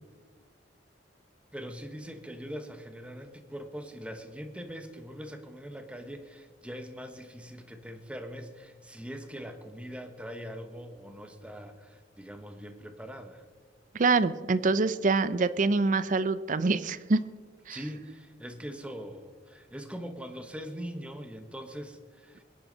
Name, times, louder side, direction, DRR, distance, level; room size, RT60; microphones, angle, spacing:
voice 1, 1.5-13.4 17.7-22.4, equal, 5° right, 7 dB, 1.0 m, -42 dB
voice 2, 13.9-17.2 17.7-17.8, right 3 dB, 45° right, 15 dB, 0.5 m, -25 dB
22.5 x 10.5 x 4.0 m, 1.5 s
head